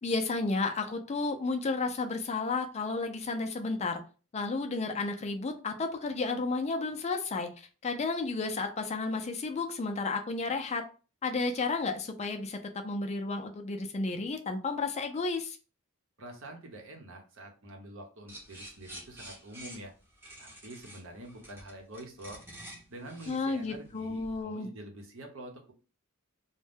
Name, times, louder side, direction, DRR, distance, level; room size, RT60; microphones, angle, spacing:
voice 1, 0.0-4.0 4.3-7.5 7.8-10.8 11.2-15.6 23.3-24.7, left 3 dB, 30° left, 5 dB, 0.4 m, -32 dB
voice 2, 16.2-19.9 20.4-22.4 22.9-25.7, right 1 dB, 65° right, 2 dB, 0.8 m, -46 dB
sound 1, 18.3-24.4, right 1 dB, 10° right, 0.7 m, -49 dB
2.6 x 2.1 x 3.4 m, 0.34 s
head